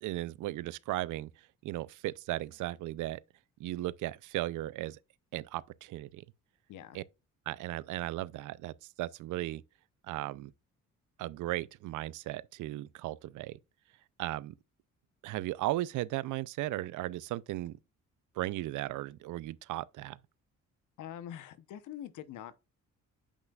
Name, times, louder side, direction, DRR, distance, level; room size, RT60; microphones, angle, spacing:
voice 1, 0.0-1.3 1.6-3.2 3.6-5.0 5.3-6.2 6.9-7.0 7.5-9.6 10.1-10.5 11.2-13.6 14.2-14.5 15.2-17.8 18.4-20.2, right 16 dB, 80° right, 0.5 m, -36 dB
voice 2, 6.7-7.0 21.0-22.5, left 11 dB, 80° left, 0.9 m, -44 dB
8.2 x 5.5 x 2.4 m
cardioid pair, 90°, 30 cm